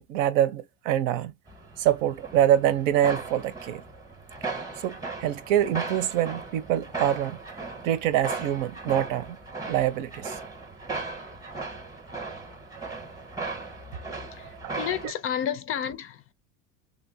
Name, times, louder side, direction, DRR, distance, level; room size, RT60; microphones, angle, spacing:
voice 1, 0.0-1.3 1.8-3.8 4.8-7.4 7.8-9.4 9.7-10.4 14.4-14.8, right 11 dB, 80° right, 0.8 m, -25 dB
sound 1, 1.5-15.1, right 3 dB, 10° right, 0.8 m, -37 dB
voice 2, 14.3-16.3, left 9 dB, 35° left, 0.4 m, -31 dB
3.5 x 2.5 x 2.7 m
supercardioid pair, 130°, 39 cm